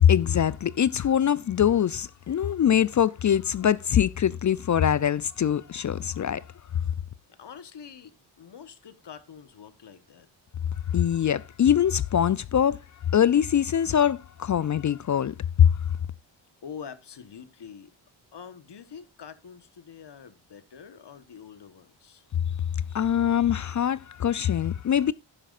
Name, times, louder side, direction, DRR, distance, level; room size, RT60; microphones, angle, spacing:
voice 1, 0.0-6.4 10.9-12.8 13.1-15.7 22.9-25.1, left 9 dB, 40° left, 0.4 m, -23 dB
voice 2, 7.3-10.3 16.6-17.9 18.3-22.3, left 7 dB, 55° left, 1.3 m, -45 dB
12.0 x 10.0 x 2.5 m
supercardioid pair, 45°, 50 cm